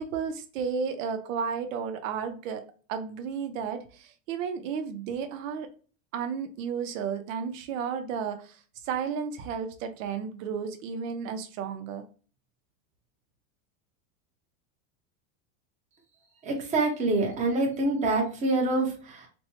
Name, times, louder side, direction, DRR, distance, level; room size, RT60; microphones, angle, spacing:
voice 1, 0.0-2.6 2.9-5.7 6.1-12.0, right 6 dB, 75° right, 7 dB, 0.7 m, -33 dB
voice 2, 16.4-19.3, right 2 dB, 20° right, 0 dB, 0.8 m, -26 dB
4.3 x 2.1 x 2.9 m, 0.38 s
supercardioid pair, 160°, 39 cm